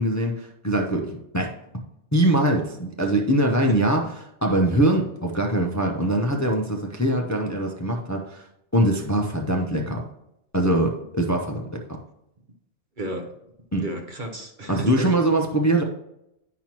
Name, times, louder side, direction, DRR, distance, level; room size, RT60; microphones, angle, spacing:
voice 1, 0.0-1.6 2.1-4.0 4.4-8.5 8.7-10.0 10.5-12.0 13.7-13.8 14.7-15.8, right 1 dB, 20° left, 1 dB, 0.6 m, -22 dB
voice 2, 3.7-4.0 13.0-13.3 13.8-15.2, right 1 dB, 45° right, 4 dB, 0.9 m, -33 dB
8.9 x 5.8 x 3.0 m, 0.83 s
omnidirectional pair, 1.2 m